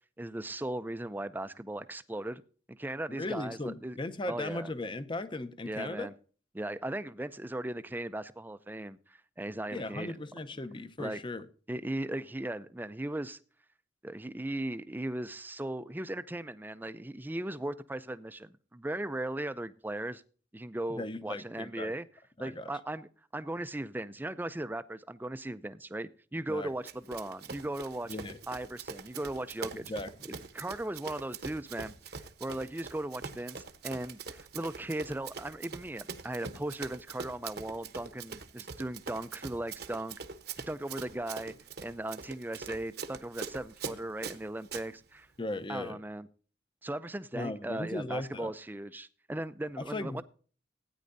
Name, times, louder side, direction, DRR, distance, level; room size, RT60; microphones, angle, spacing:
voice 1, 0.2-2.4 2.7-4.0 4.3-4.7 5.6-6.1 6.5-10.2 11.0-11.2 11.7-13.4 14.0-20.2 20.5-22.1 22.4-28.2 28.5-29.9 30.3-40.2 40.7-41.5 41.8-45.3 45.7-46.3 46.8-50.2, right 1 dB, 10° right, 0.5 m, -37 dB
voice 2, 3.1-6.1 9.7-11.4 20.9-21.9 22.4-22.7 26.5-26.7 28.1-28.4 29.7-30.3 45.4-46.0 47.3-48.5 49.8-50.2, left 2 dB, 25° left, 0.7 m, -37 dB
Run, 26.9-44.9, right 5 dB, 60° right, 1.0 m, -43 dB
16.5 x 9.6 x 2.6 m
head